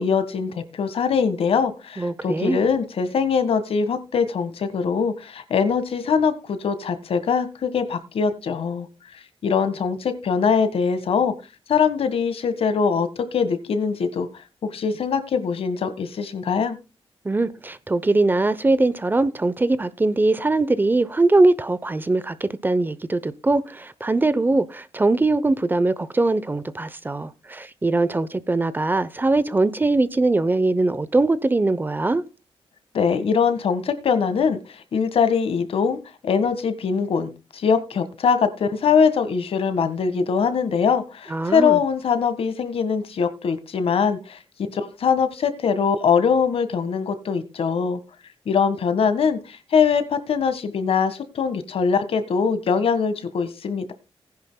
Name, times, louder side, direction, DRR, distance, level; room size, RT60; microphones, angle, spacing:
voice 1, 0.0-8.9 9.4-11.3 11.7-14.3 14.6-16.8 32.9-44.4 44.7-48.0 48.4-53.9, left 6 dB, 70° left, 1.7 m, -22 dB
voice 2, 2.0-2.6 17.2-32.2 41.3-41.8, right 2 dB, 20° right, 0.7 m, -21 dB
18.5 x 10.5 x 2.3 m
wide cardioid pair, 125°, 10 cm